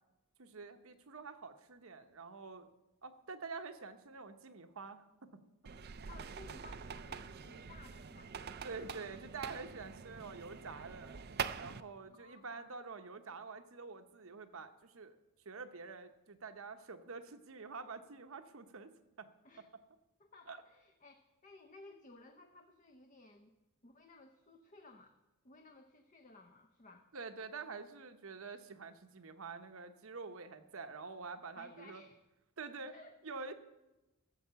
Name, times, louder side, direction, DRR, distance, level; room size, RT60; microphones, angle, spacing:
voice 1, 0.4-2.7 3.0-5.3 8.6-11.2 11.6-15.2 15.4-18.9 19.2-19.3 20.5-20.6 27.1-32.0 32.6-32.9 33.2-33.5, right 4 dB, 70° right, 9 dB, 0.9 m, -47 dB
sound 1, 5.7-11.8, right 6 dB, 45° right, 0.5 m, -45 dB
voice 2, 6.1-8.3 12.0-12.7 19.4-19.7 20.2-23.5 23.8-25.1 25.4-27.1 31.6-32.2 32.9-33.1, left 3 dB, 35° left, 5 dB, 0.7 m, -58 dB
14.0 x 7.6 x 6.9 m, 1.0 s
head